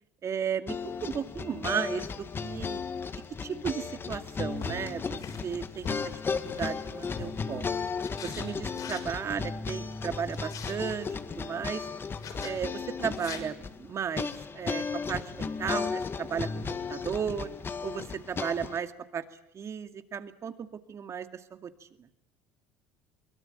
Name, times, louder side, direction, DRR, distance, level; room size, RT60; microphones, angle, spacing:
voice 1, 0.2-2.8 3.1-7.7 8.2-11.9 12.4-17.5 17.8-19.2 19.5-21.7 22.0-22.1, right 7 dB, 40° right, 9 dB, 2.3 m, -35 dB
sound 1, 0.7-18.8, left 5 dB, 30° left, 1.9 m, -35 dB
sound 2, 4.5-7.5 8.0-9.1 10.1-10.8 12.2-12.5 13.1-13.4, left 6 dB, 55° left, 6.2 m, -43 dB
23.0 x 23.0 x 9.0 m, 0.80 s
hypercardioid pair, 70°, 7 cm